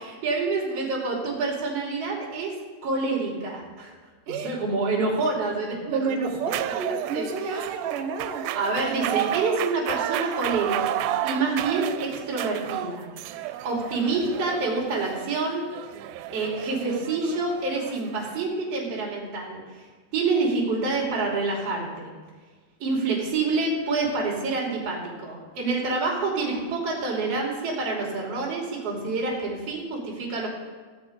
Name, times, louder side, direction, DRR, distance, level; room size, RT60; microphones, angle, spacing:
voice 1, 0.0-2.5 2.8-3.9 4.3-6.3 7.1-7.7 8.5-13.1 13.4-15.6 16.3-22.1 22.8-30.5, right 3 dB, 45° right, -2 dB, 3.9 m, -27 dB
voice 2, 5.9-8.5, right 5 dB, 70° right, 5 dB, 2.8 m, -30 dB
sound 1, 6.5-18.4, right 13 dB, 90° right, 2.4 m, -32 dB
16.5 x 8.1 x 5.1 m, 1.4 s
omnidirectional pair, 4.1 m